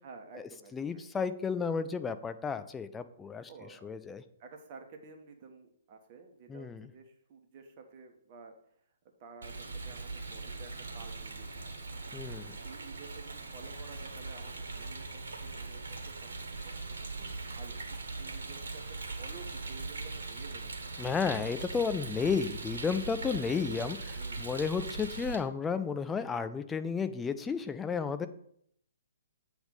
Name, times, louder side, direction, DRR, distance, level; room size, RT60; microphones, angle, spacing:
voice 1, 0.0-1.3 3.5-3.9 4.4-8.8 9.2-11.7 12.6-16.2 16.6-16.7 17.2-20.7 23.3-24.5, right 5 dB, 35° right, 4 dB, 1.3 m, -52 dB
voice 2, 0.7-4.2 6.5-6.9 12.1-12.6 21.0-24.0 24.4-28.3, left 5 dB, 10° left, 11 dB, 0.4 m, -32 dB
Rain, 9.4-25.4, right 3 dB, 60° right, 1.5 m, -40 dB
7.9 x 3.6 x 6.4 m, 0.68 s
figure-of-eight pair, 125°, 0 cm